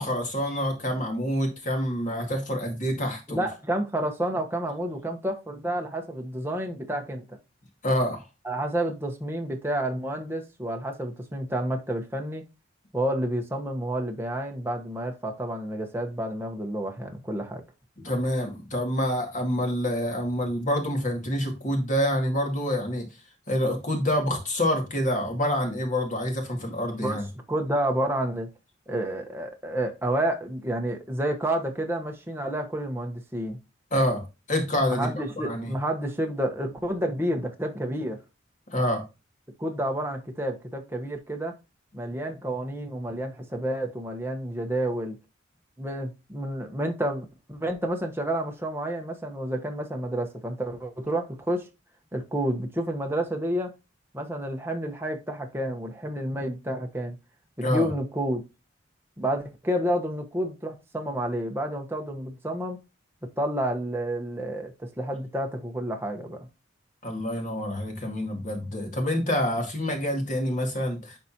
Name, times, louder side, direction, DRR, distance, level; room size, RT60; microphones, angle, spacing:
voice 1, 0.0-3.4 7.8-8.2 18.0-23.1 23.5-27.2 33.9-35.1 35.4-35.7 38.7-39.0 57.6-57.9 67.0-71.2, equal, 40° left, 2.2 m, -27 dB
voice 2, 3.3-7.4 8.4-12.4 12.9-17.6 27.0-27.2 27.5-28.5 28.9-33.6 34.9-38.2 39.6-41.6 41.9-45.2 45.8-51.7 52.1-53.7 54.1-57.2 57.6-58.4 59.2-62.8 63.2-66.4, right 1 dB, 10° right, 1.1 m, -30 dB
11.0 x 4.2 x 2.9 m
head